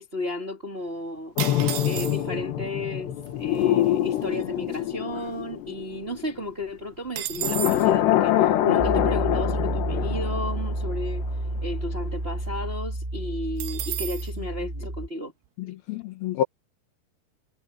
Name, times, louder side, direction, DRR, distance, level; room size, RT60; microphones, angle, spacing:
voice 1, 0.0-11.2 11.6-15.3, left 1 dB, 35° right, 0.9 m, -34 dB
sound 1, 1.4-6.4 7.3-11.3 11.6-11.8, left 12 dB, 85° left, 3.7 m, -25 dB
sound 2, 1.4-2.5 3.3-3.4 3.6-3.9 4.3-5.8 6.1-6.2 6.5-7.9 13.6-14.3, right 13 dB, 80° right, 3.4 m, -33 dB
Piano, 8.8-15.1, right 1 dB, 15° right, 1.3 m, -30 dB
voice 2, 15.6-16.4, left 10 dB, 70° left, 2.9 m, -28 dB
omnidirectional pair, 4.8 m